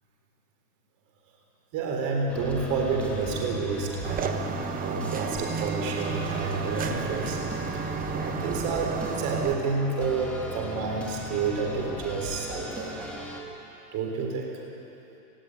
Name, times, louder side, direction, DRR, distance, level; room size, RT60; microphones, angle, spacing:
voice 1, 1.7-4.5 4.8-7.4 7.7-7.8 8.1-12.9 13.9-14.6, right 4 dB, 35° right, 1 dB, 3.9 m, -29 dB
sound 1, 2.3-13.4, equal, ahead, 2.7 m, -38 dB
sound 2, 4.0-9.5, right 6 dB, 15° right, 0.9 m, -32 dB
19.0 x 15.0 x 9.6 m, 2.9 s
hypercardioid pair, 135°, 48 cm